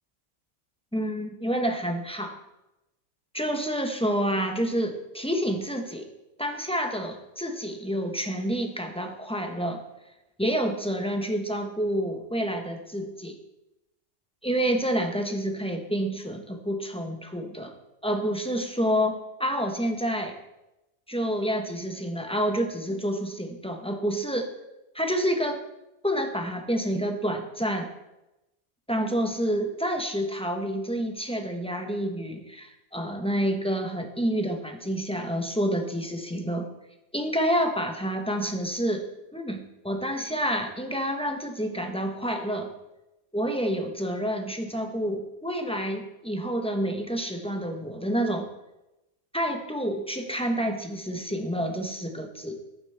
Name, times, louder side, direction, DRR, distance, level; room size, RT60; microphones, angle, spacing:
voice 1, 0.9-2.3 3.3-6.1 6.4-9.8 10.4-13.4 14.4-17.7 18.0-20.4 21.1-24.5 24.9-25.6 26.0-27.9 28.9-36.7 37.1-39.1 39.3-42.7 43.3-48.5 49.3-52.6, equal, 5° left, 3 dB, 0.8 m, -28 dB
11.0 x 9.0 x 3.4 m, 0.95 s
omnidirectional pair, 1.2 m